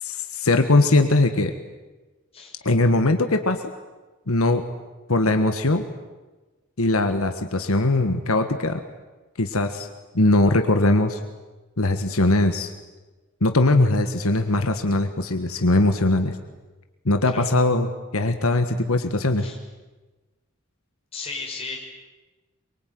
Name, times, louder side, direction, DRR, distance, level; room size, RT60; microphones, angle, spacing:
voice 1, 0.0-1.5 2.6-3.6 4.3-4.6 5.1-5.9 6.8-8.8 9.4-9.9 10.1-11.2 11.8-12.7 13.4-16.4 17.0-19.5, left 2 dB, 85° left, 7 dB, 1.6 m, -20 dB
voice 2, 21.1-21.8, left 4 dB, 25° left, -1 dB, 6.0 m, -34 dB
23.5 x 23.5 x 9.5 m, 1.2 s
head